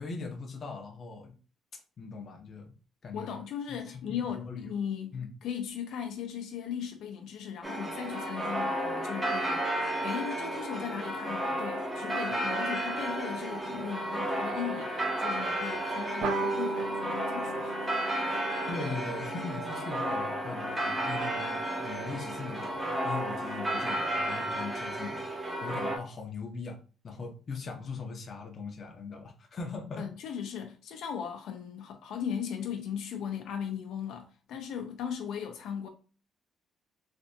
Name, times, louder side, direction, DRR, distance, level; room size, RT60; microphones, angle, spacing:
voice 1, 0.0-1.3 1.7-2.7 3.0-3.4 3.7-3.8 4.4-4.6 5.1-5.3 18.7-26.8 27.0-30.1, left 4 dB, 35° left, 0.6 m, -40 dB
voice 2, 3.1-9.7 10.0-17.9 18.2-18.5 30.0-35.9, left 8 dB, 75° left, 0.5 m, -37 dB
sound 1, 7.6-26.0, right 1 dB, 10° right, 0.6 m, -33 dB
sound 2, 16.2-21.1, right 3 dB, 75° right, 0.6 m, -37 dB
3.3 x 2.6 x 2.7 m
cardioid pair, 160°, 0 cm